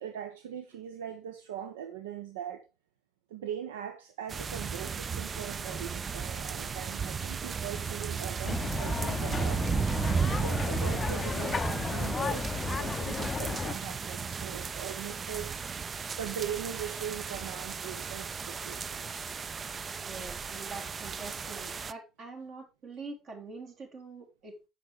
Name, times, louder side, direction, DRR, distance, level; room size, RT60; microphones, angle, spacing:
voice 1, 0.0-2.7 3.3-9.6 10.4-15.7 16.2-19.2, right 9 dB, 70° right, 0.8 m, -41 dB
sound 1, 4.3-21.9, right 6 dB, 35° right, 0.4 m, -35 dB
sound 2, 8.4-13.7, left 5 dB, 30° left, 0.5 m, -33 dB
voice 2, 20.0-24.6, right 3 dB, 50° right, 3.6 m, -44 dB
10.0 x 8.3 x 3.5 m
figure-of-eight pair, 55°, 0 cm